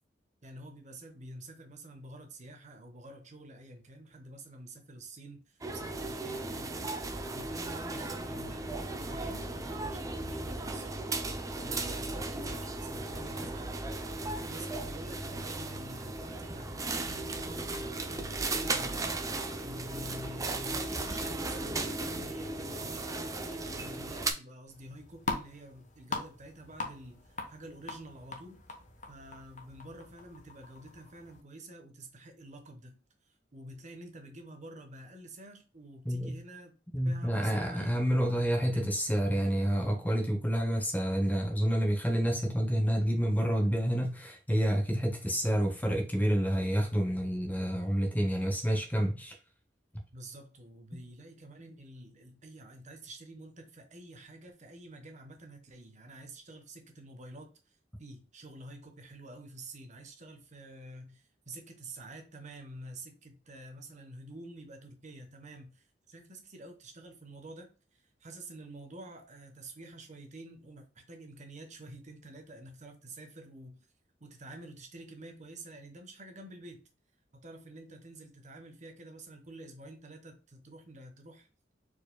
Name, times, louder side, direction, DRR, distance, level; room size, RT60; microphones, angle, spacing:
voice 1, 0.4-7.0 7.3-10.9 11.6-13.8 14.2-19.0 19.6-28.6 29.1-33.0 33.5-36.7 37.0-38.8 50.1-73.8 74.2-76.8 77.3-81.5, right 1 dB, 40° right, 1.0 m, -48 dB
sound 1, 5.6-24.3, right 2 dB, 20° right, 0.5 m, -36 dB
sound 2, 24.7-31.4, left 3 dB, 45° left, 1.0 m, -42 dB
voice 2, 36.0-36.4 36.9-49.4, equal, 10° left, 0.8 m, -29 dB
4.8 x 4.4 x 2.2 m
head